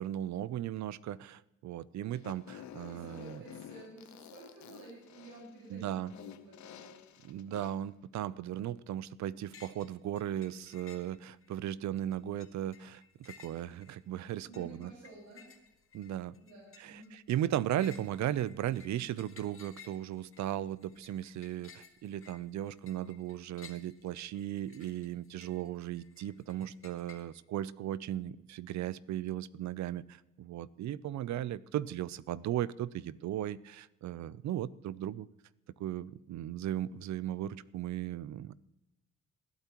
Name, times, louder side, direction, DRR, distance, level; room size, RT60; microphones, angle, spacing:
voice 1, 0.0-3.4 5.7-6.1 7.2-14.9 15.9-16.3 16.8-17.0 17.3-35.3 35.8-38.5, right 12 dB, 65° right, 19 dB, 0.6 m, -36 dB
Fart, 2.1-7.9, left 11 dB, 70° left, 0.9 m, -51 dB
voice 2, 2.9-7.3 14.4-15.8 16.4-17.1, right 2 dB, 85° right, -4 dB, 5.1 m, -52 dB
sound 1, 9.5-9.9 10.2-11.5 12.0-27.2, left 6 dB, 45° left, 1.9 m, -57 dB
20.5 x 12.0 x 3.0 m, 0.95 s
cardioid pair, 90°, 30 cm